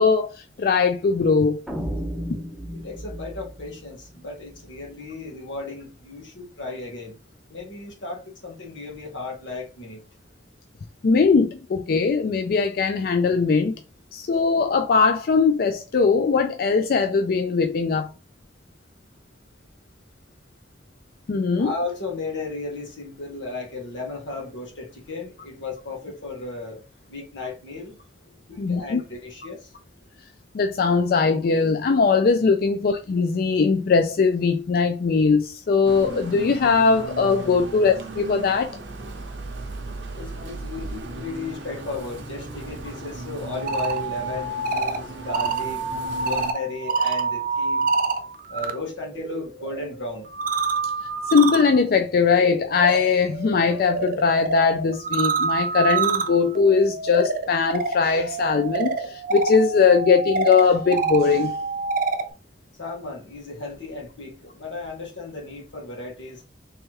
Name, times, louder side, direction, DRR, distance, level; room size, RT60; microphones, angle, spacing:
voice 1, 0.0-1.6 2.3-2.4 11.0-13.8 14.1-18.1 21.3-21.7 28.6-29.0 30.5-38.8 51.3-61.5, left 5 dB, 55° left, 0.4 m, -20 dB
sound 1, 1.7-4.8, equal, ahead, 0.5 m, -34 dB
voice 2, 2.7-7.2 7.5-10.0 21.6-28.0 28.5-29.7 40.1-45.8 46.2-47.9 48.5-50.3 62.8-66.5, left 3 dB, 90° left, 1.6 m, -35 dB
sound 2, 35.8-46.5, right 2 dB, 90° right, 0.7 m, -37 dB
sound 3, 43.5-48.7 49.0-62.3, right 4 dB, 50° right, 0.5 m, -27 dB
3.4 x 3.1 x 3.1 m
head